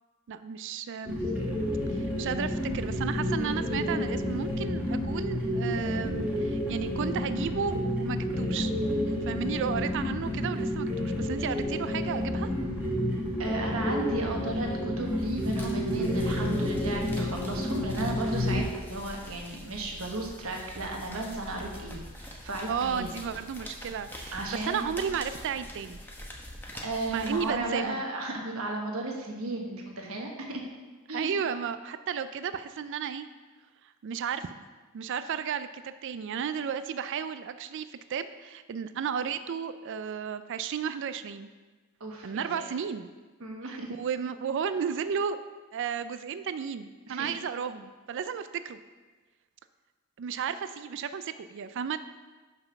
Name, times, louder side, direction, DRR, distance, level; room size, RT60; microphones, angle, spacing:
voice 1, 0.3-1.2 1.9-8.7 9.0-12.5 22.7-26.0 27.1-28.0 31.1-33.3 34.0-34.5 34.9-41.5 42.2-43.1 43.7-45.4 45.7-48.8 50.2-52.0, right 7 dB, 60° right, 12 dB, 0.4 m, -33 dB
sound 1, 1.1-18.6, left 1 dB, 5° right, 1.4 m, -30 dB
voice 2, 13.4-23.2 24.3-24.9 26.8-30.6 31.1-31.4 42.0-42.6 43.4-44.0 47.1-47.4, right 2 dB, 75° right, 1 dB, 1.3 m, -35 dB
sound 2, 15.1-27.9, left 1 dB, 10° left, 0.9 m, -45 dB
5.8 x 5.6 x 5.9 m, 1.3 s
head